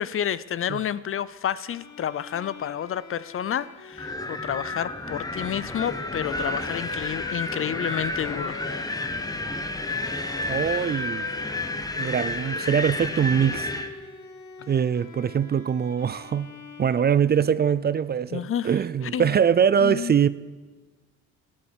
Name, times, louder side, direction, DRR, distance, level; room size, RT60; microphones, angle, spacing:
voice 1, 0.0-8.6 18.3-18.7 19.1-19.3 19.8-20.2, left 9 dB, 45° left, 0.6 m, -30 dB
Bowed string instrument, 1.7-17.6, left 7 dB, 70° left, 1.5 m, -44 dB
Wind, 4.0-13.9, left 2 dB, 10° left, 1.0 m, -31 dB
voice 2, 10.5-11.3 12.0-13.7 14.7-16.5 16.8-20.3, right 8 dB, 35° right, 0.4 m, -23 dB
14.5 x 8.7 x 7.3 m
cardioid pair, 90°, 30 cm